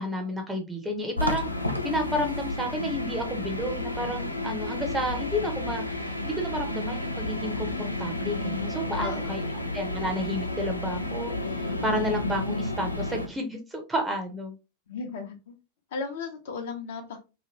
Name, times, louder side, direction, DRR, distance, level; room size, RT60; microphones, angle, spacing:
voice 1, 0.0-9.5 9.7-14.5, equal, 10° right, 0.8 m, -31 dB
sound 1, 1.2-13.3, left 2 dB, 85° left, 0.4 m, -31 dB
voice 2, 9.0-9.7 14.9-15.5 15.9-17.2, left 4 dB, 55° left, 0.8 m, -35 dB
2.9 x 2.5 x 2.9 m
figure-of-eight pair, 90°, 0 cm